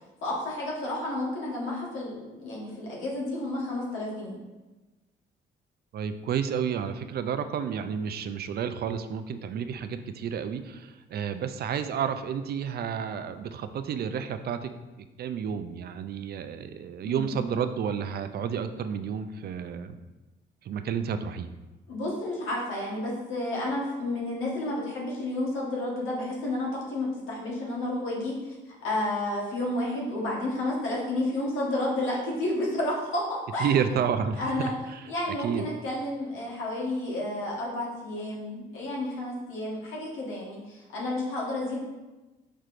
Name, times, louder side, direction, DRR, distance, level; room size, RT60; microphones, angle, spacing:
voice 1, 0.2-4.4 17.1-17.3 21.9-28.5 28.8-33.7 34.4-34.7 35.1-41.8, left 1 dB, 85° left, -4 dB, 1.3 m, -31 dB
voice 2, 5.9-14.7 15.0-20.0 20.6-21.5 33.6-34.5 34.9-35.1 35.4-35.7, right 7 dB, 55° right, 10 dB, 0.4 m, -31 dB
4.8 x 4.4 x 2.5 m, 1.1 s
cardioid pair, 90°, 20 cm